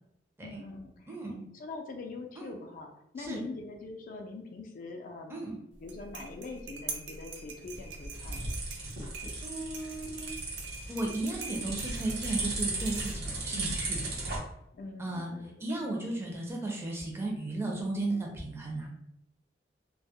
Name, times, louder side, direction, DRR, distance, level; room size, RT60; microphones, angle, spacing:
voice 1, 0.4-1.0 1.5-5.4 5.8-8.6 13.5-13.8 14.7-15.8, left 3 dB, 45° left, 3 dB, 0.3 m, -43 dB
voice 2, 1.1-1.5 2.4-2.6 3.2-3.4 5.3-5.5 9.4-10.3 10.9-14.4 15.0-15.3 15.6-18.9, right 2 dB, 15° right, -1 dB, 0.5 m, -35 dB
sound 1, 5.7-13.5, right 4 dB, 80° right, 0.5 m, -44 dB
sound 2, 7.6-14.4, right 2 dB, 60° right, 0.9 m, -36 dB
2.2 x 2.0 x 2.7 m, 0.79 s
head